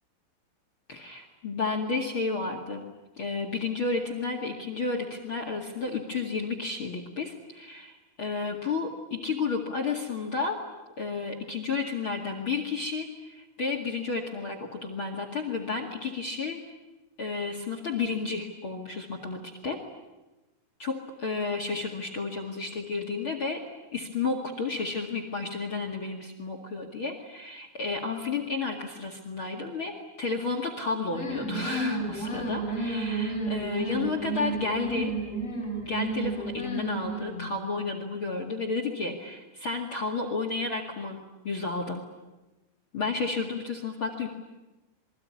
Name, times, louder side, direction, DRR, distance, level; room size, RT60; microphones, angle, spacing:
voice 1, 0.9-2.8 3.2-10.6 11.0-16.6 17.2-19.8 20.8-23.6 23.9-35.1 35.8-41.2 41.4-42.0 42.9-44.3, left 4 dB, 55° left, 6 dB, 1.4 m, -32 dB
sound 1, 31.1-37.5, right 2 dB, 15° left, 6.8 m, -32 dB
27.5 x 22.5 x 9.7 m, 1.1 s
omnidirectional pair, 6.0 m